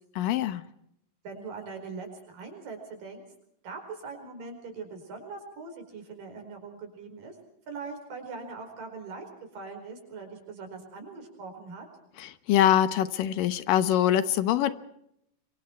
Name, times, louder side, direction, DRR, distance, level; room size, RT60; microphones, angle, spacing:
voice 1, 0.2-0.6 12.2-14.7, left 11 dB, 85° left, 13 dB, 2.8 m, -24 dB
voice 2, 1.2-3.3 3.6-7.4 7.7-9.2 9.5-11.9, right 4 dB, 85° right, 5 dB, 6.4 m, -41 dB
27.0 x 23.5 x 4.5 m, 0.76 s
omnidirectional pair, 3.8 m